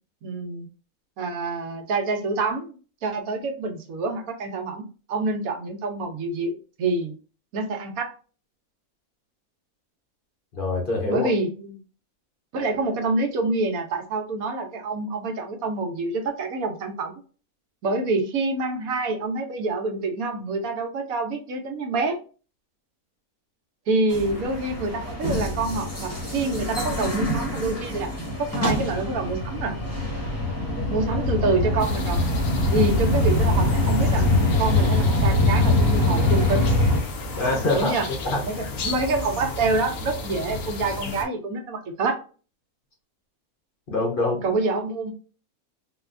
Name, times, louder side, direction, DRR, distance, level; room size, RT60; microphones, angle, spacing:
voice 1, 0.2-0.7 1.2-6.5 6.8-7.2 7.5-8.1 11.1-11.8 12.5-17.1 17.8-22.2 23.9-28.1 28.4-29.7 30.9-32.2 32.7-36.7 37.7-38.1 38.4-42.2 44.4-45.1, right 3 dB, 80° right, 4 dB, 1.1 m, -27 dB
voice 2, 10.6-11.3 37.4-37.9 38.2-38.7 43.9-44.5, left 2 dB, 45° left, -1 dB, 0.8 m, -25 dB
sound 1, 24.1-37.0, left 1 dB, 15° left, 0.8 m, -23 dB
sound 2, 31.8-41.2, left 3 dB, 70° left, 1.0 m, -33 dB
3.8 x 2.2 x 2.4 m, 0.37 s
omnidirectional pair, 1.5 m